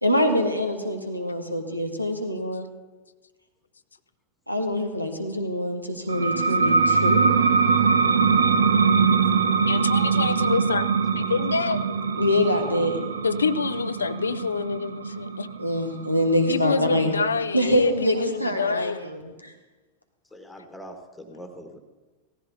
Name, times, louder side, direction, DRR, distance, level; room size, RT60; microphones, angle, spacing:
voice 1, 0.0-2.7 4.5-7.4 12.2-13.0 15.6-17.2 17.5-19.5, equal, 90° right, 6 dB, 1.3 m, -25 dB
sound 1, 6.1-17.4, right 5 dB, 70° right, 0.7 m, -22 dB
voice 2, 9.7-10.8 11.2-12.0 13.2-15.5 16.5-19.0, left 5 dB, 75° left, 12 dB, 0.4 m, -26 dB
voice 3, 20.3-21.8, equal, 5° left, 5 dB, 1.4 m, -43 dB
16.5 x 14.5 x 2.7 m, 1.2 s
figure-of-eight pair, 90°, 0 cm